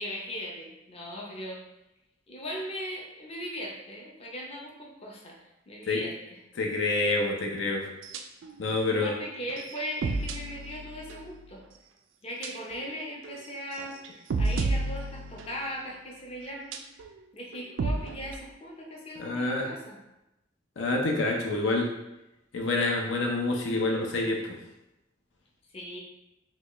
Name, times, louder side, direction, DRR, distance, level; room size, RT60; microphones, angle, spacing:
voice 1, 0.0-1.6 2.3-5.3 5.7-6.4 8.9-11.6 12.2-16.7 17.3-20.0 25.7-26.0, equal, 30° left, -2 dB, 0.6 m, -38 dB
voice 2, 6.6-7.9 8.6-9.1 19.2-19.7 20.8-21.9 22.5-24.4, left 2 dB, 75° left, 1 dB, 0.6 m, -27 dB
sound 1, 8.0-8.5 9.0-9.1 9.5-11.5 12.4-12.8 13.2-13.4 13.8-15.8 16.5-17.1 17.5-18.4, right 3 dB, 90° right, 0.4 m, -32 dB
4.1 x 2.3 x 3.0 m, 0.93 s
head